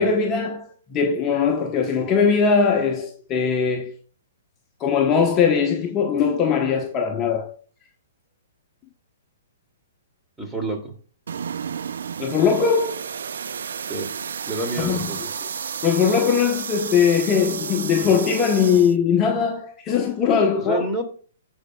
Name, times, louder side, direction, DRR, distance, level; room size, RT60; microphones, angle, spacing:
voice 1, 0.0-4.0 4.8-7.5 12.2-13.0 14.8-15.3 15.8-20.9, left 6 dB, 25° left, 0.9 m, -20 dB
voice 2, 10.4-10.9 13.9-14.1 14.5-15.3 20.5-21.0, right 1 dB, 5° right, 2.3 m, -28 dB
sound 1, 11.3-19.0, right 7 dB, 70° right, 0.4 m, -32 dB
16.5 x 5.5 x 2.2 m
hypercardioid pair, 125°, 0 cm